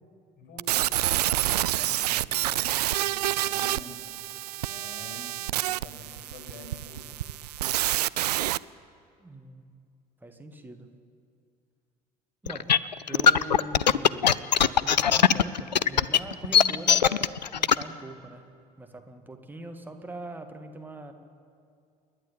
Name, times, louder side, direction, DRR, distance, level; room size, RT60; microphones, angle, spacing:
voice 1, 0.4-0.9 1.4-4.1 4.7-7.3, left 2 dB, 40° left, 0 dB, 7.6 m, -47 dB
sound 1, 0.6-8.6, right 14 dB, 70° right, 0.4 m, -28 dB
voice 2, 9.2-9.8 10.2-10.9 12.4-18.4 18.8-21.1, right 2 dB, 10° right, 5 dB, 2.0 m, -42 dB
sound 2, 12.5-17.8, left 8 dB, 80° left, 0.4 m, -20 dB
28.5 x 11.0 x 8.7 m, 2.3 s
figure-of-eight pair, 65°, 21 cm